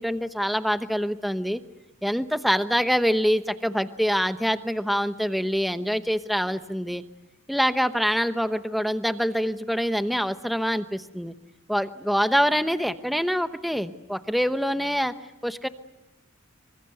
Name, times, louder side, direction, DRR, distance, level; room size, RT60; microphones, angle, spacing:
voice 1, 0.0-1.6 2.0-7.0 7.5-11.3 11.7-15.1 15.4-15.7, equal, ahead, 10 dB, 0.9 m, -25 dB
26.0 x 25.0 x 8.0 m, 1.0 s
head